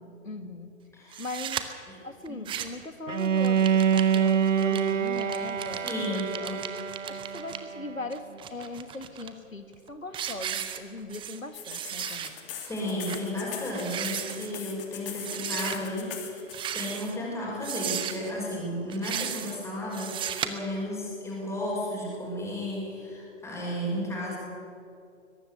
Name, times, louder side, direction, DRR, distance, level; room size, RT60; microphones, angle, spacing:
voice 1, 0.2-0.7 1.2-1.7 2.0-6.6 7.1-12.3, left 2 dB, 85° left, 9 dB, 1.9 m, -40 dB
voice 2, 0.9-1.3 1.9-2.0 2.3-2.4 5.8-6.6 12.7-16.4 16.7-24.4, left 1 dB, 5° left, -4 dB, 6.1 m, -33 dB
sound 1, 1.1-1.6 2.3-2.9 3.2-7.6 8.1-9.3 9.7-9.9 10.1-11.4 11.6-12.3 12.7-12.8 13.1-13.2 13.7-14.5 15.2-15.8 16.5-17.2 17.6-18.3 18.9-19.6 19.9-20.5, right 10 dB, 15° right, 0.9 m, -35 dB
Bowed string instrument, 3.1-8.1, right 8 dB, 70° right, 0.8 m, -26 dB
sound 2, 11.5-16.5, left 9 dB, 45° left, 3.1 m, -40 dB
22.0 x 12.5 x 10.0 m, 2.5 s
figure-of-eight pair, 115°, 39 cm